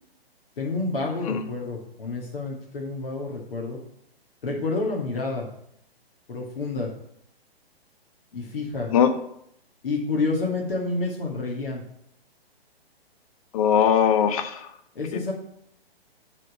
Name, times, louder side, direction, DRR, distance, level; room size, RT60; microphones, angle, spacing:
voice 1, 0.6-3.8 4.4-5.5 6.3-6.9 8.3-8.9 9.8-11.8 15.0-15.3, left 3 dB, 60° left, -1 dB, 1.9 m, -29 dB
voice 2, 13.5-14.7 15.1-15.3, left 8 dB, 35° left, 9 dB, 0.6 m, -21 dB
7.5 x 3.9 x 6.3 m, 0.73 s
figure-of-eight pair, 125°, 31 cm